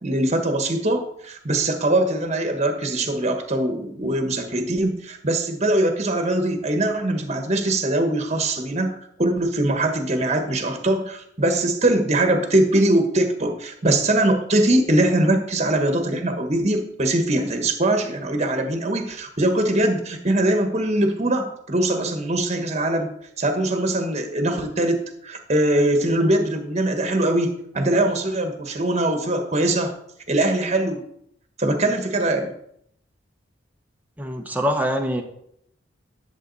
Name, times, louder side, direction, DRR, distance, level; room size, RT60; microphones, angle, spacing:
voice 1, 0.0-23.1 23.4-29.9 30.3-31.0 31.6-32.5, right 1 dB, 35° right, 5 dB, 1.4 m, -22 dB
voice 2, 34.2-35.2, equal, 10° right, 3 dB, 1.1 m, -24 dB
11.0 x 7.2 x 4.1 m, 0.72 s
head